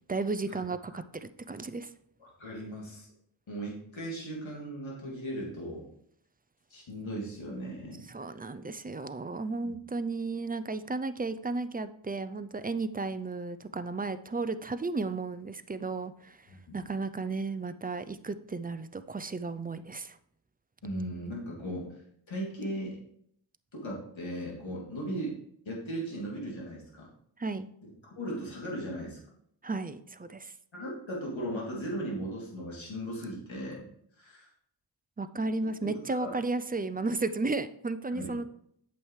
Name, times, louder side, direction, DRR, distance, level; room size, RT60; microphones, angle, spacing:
voice 1, 0.1-1.9 8.1-16.5 16.7-20.2 27.4-27.7 29.6-30.5 35.2-38.5, right 3 dB, 20° right, 11 dB, 0.3 m, -34 dB
voice 2, 2.2-3.1 3.5-5.8 6.7-8.0 9.6-9.8 16.5-16.8 20.8-21.9 22.3-23.0 23.7-25.3 25.6-27.1 27.8-29.2 30.7-33.8 34.2-34.5 35.9-36.3 38.1-38.3, right 1 dB, 75° left, -4 dB, 2.8 m, -37 dB
8.5 x 7.3 x 3.2 m, 0.70 s
wide cardioid pair, 80°, 47 cm